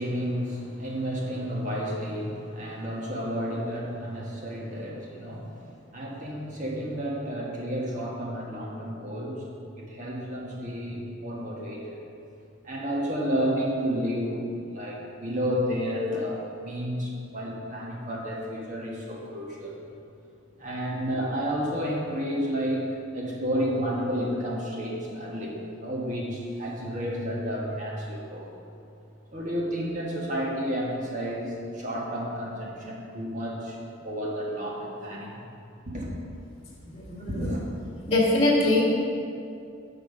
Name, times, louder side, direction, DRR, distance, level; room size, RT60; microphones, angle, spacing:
voice 1, 0.0-5.5 5.9-9.5 9.8-12.0 12.6-19.8 20.6-22.9 23.1-28.5 29.3-33.8 34.0-35.4 35.8-36.1 37.3-37.6, equal, 35° right, -3 dB, 1.6 m, -31 dB
voice 2, 36.9-37.6 38.1-38.8, left 2 dB, 30° left, -9 dB, 1.7 m, -23 dB
8.7 x 5.7 x 5.5 m, 2.5 s
head